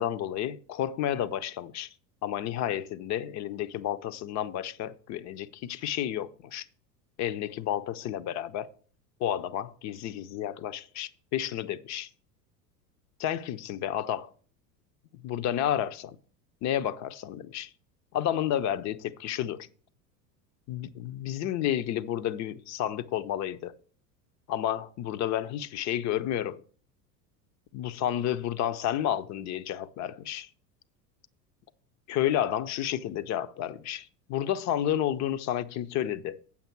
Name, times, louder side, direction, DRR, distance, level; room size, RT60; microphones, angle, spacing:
voice 1, 0.0-1.9 2.2-6.7 7.2-8.7 9.2-12.1 13.2-14.3 15.2-16.2 16.6-17.7 18.1-19.7 20.7-23.7 24.5-26.6 27.7-30.5 32.1-36.4, left 11 dB, 35° left, 0.6 m, -31 dB
8.8 x 7.2 x 4.5 m
hypercardioid pair, 80°, 50 cm